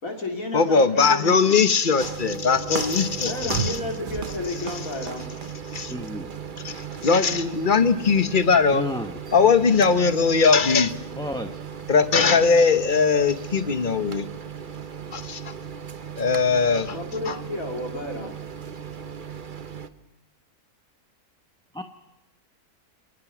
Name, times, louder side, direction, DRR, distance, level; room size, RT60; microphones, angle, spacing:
voice 1, 0.0-1.7 3.2-5.3 16.9-18.4, left 1 dB, 60° left, 2 dB, 3.1 m, -32 dB
voice 2, 0.5-3.8 5.7-5.9 6.6-6.7 7.0-8.9 9.3-10.9 11.9-14.3 15.1-15.5 16.2-17.0 17.3-17.4, left 5 dB, 35° left, 11 dB, 1.0 m, -20 dB
sound 1, 2.0-19.9, right 6 dB, 40° right, 1.0 m, -36 dB
voice 3, 5.9-6.3 8.7-9.1 11.2-11.6 21.7-21.8, left 1 dB, 5° left, 5 dB, 0.9 m, -31 dB
27.5 x 19.5 x 6.1 m, 0.98 s
omnidirectional pair, 1.6 m